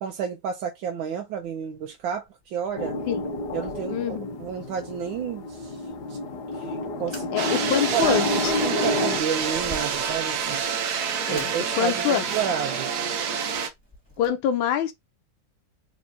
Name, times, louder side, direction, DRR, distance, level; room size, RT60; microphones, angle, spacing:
voice 1, 0.0-3.0 3.5-5.8 6.1-6.2 6.5-7.4 7.9-10.6 11.3-12.9, right 8 dB, 85° right, 1.4 m, -31 dB
Fire, 1.3-14.3, left 1 dB, 5° right, 2.0 m, -49 dB
sound 1, 2.8-9.2, left 2 dB, 65° left, 1.4 m, -29 dB
voice 2, 3.9-4.4 7.3-8.5 11.3-11.5 11.8-12.2 14.2-14.9, left 10 dB, 90° left, 1.4 m, -25 dB
sound 2, 7.4-13.7, right 7 dB, 60° right, 1.2 m, -28 dB
4.1 x 3.5 x 2.7 m
omnidirectional pair, 2.1 m